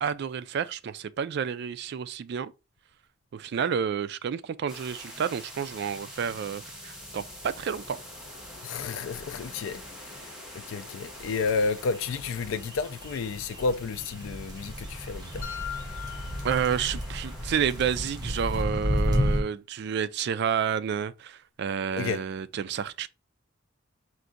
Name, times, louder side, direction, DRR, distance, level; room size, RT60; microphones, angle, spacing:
voice 1, 0.0-2.5 3.3-8.0 16.4-23.1, right 7 dB, 60° right, 0.3 m, -30 dB
sound 1, 4.7-18.6, left 1 dB, 5° right, 1.2 m, -45 dB
voice 2, 8.6-9.8 10.5-15.5 22.0-22.2, left 4 dB, 90° left, 0.4 m, -31 dB
sound 2, 11.2-19.4, equal, 20° right, 0.7 m, -32 dB
sound 3, 15.4-17.4, left 9 dB, 40° left, 1.3 m, -40 dB
4.6 x 2.6 x 3.8 m
head